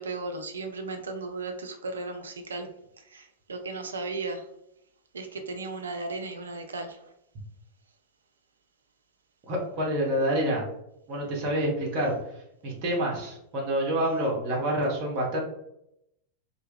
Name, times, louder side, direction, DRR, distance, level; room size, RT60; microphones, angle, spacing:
voice 1, 0.0-2.7 3.1-4.4 5.1-7.0, right 3 dB, 70° right, 6 dB, 0.3 m, -35 dB
voice 2, 9.5-10.6 11.1-12.2 12.6-15.4, right 1 dB, 40° right, -2 dB, 0.7 m, -27 dB
2.2 x 2.1 x 3.2 m, 0.79 s
figure-of-eight pair, 90°, 0 cm